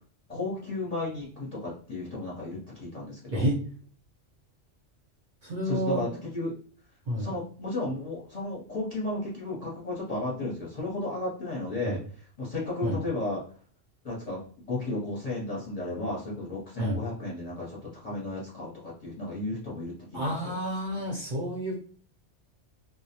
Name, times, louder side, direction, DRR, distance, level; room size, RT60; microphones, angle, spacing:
voice 1, 0.3-3.5 5.6-6.5 7.2-12.0 12.4-13.4 14.0-14.4 14.7-20.6, left 2 dB, 40° left, -5 dB, 0.7 m, -34 dB
voice 2, 5.4-6.1 7.1-7.3 11.8-12.0 12.8-13.0 16.8-17.0 20.1-21.8, equal, 50° right, -3 dB, 0.6 m, -29 dB
2.2 x 2.1 x 2.7 m, 0.44 s
omnidirectional pair, 1.2 m